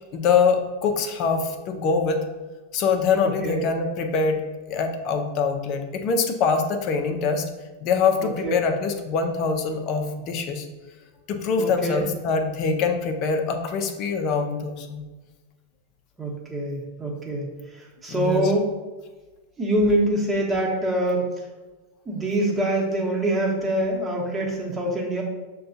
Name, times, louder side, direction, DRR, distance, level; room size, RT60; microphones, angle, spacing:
voice 1, 0.1-2.2 2.7-4.4 4.7-7.4 7.8-10.7 11.3-15.0 18.1-18.4, left 5 dB, 45° left, 5 dB, 0.6 m, -24 dB
voice 2, 3.2-3.6 8.2-8.6 11.6-12.0 16.2-18.7 19.6-21.5 22.0-25.2, right 1 dB, 15° right, -2 dB, 1.1 m, -25 dB
6.5 x 2.3 x 2.6 m, 1.2 s
hypercardioid pair, 115°, 0 cm